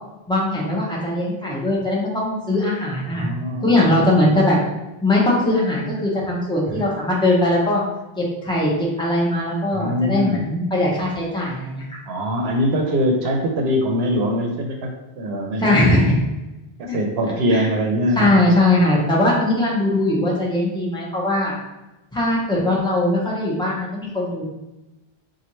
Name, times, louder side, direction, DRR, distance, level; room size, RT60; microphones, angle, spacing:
voice 1, 0.3-3.3 3.6-4.6 5.0-7.8 8.2-12.0 15.6-16.2 16.9-17.0 17.2-17.7 18.2-21.5 22.1-24.4, left 1 dB, 5° left, -5 dB, 0.8 m, -20 dB
voice 2, 3.1-4.3 6.8-7.0 9.7-10.4 12.1-15.8 16.8-18.3, equal, 80° right, 2 dB, 0.8 m, -23 dB
4.1 x 2.5 x 3.0 m, 0.99 s
omnidirectional pair, 1.0 m